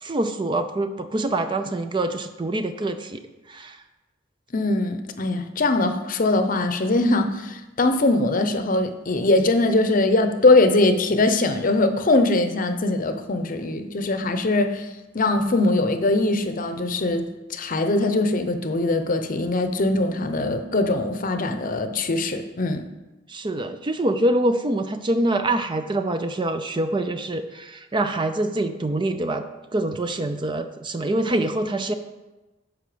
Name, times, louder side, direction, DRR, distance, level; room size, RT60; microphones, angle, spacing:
voice 1, 0.0-3.2 3.5-3.8 23.3-29.4 29.7-31.9, right 1 dB, 25° right, 0.4 m, -25 dB
voice 2, 4.5-14.9 15.1-22.8, left 2 dB, 45° left, 0.7 m, -21 dB
10.0 x 6.5 x 5.0 m
head